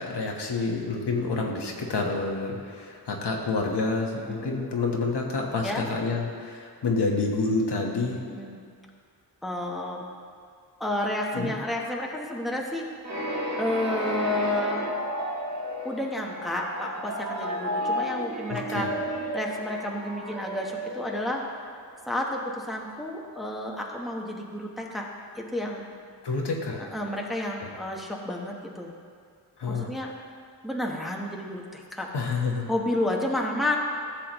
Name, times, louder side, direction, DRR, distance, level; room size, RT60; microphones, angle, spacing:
voice 1, 0.0-8.2 11.3-11.5 18.5-18.9 26.2-26.8 27.6-27.7 29.6-29.9 32.1-32.7, left 3 dB, 75° left, 0 dB, 1.3 m, -28 dB
voice 2, 1.4-1.7 4.1-4.7 5.6-5.8 8.2-8.6 9.4-10.1 10.8-12.9 13.6-14.9 15.8-18.9 19.3-21.4 22.1-25.1 25.3-25.8 26.8-28.9 29.7-30.1 30.6-32.1 32.7-33.8, left 1 dB, ahead, -1 dB, 1.1 m, -31 dB
sound 1, 13.0-21.8, equal, 40° right, 1.8 m, -32 dB
14.5 x 7.1 x 3.0 m, 2.2 s
wide cardioid pair, 95°, 41 cm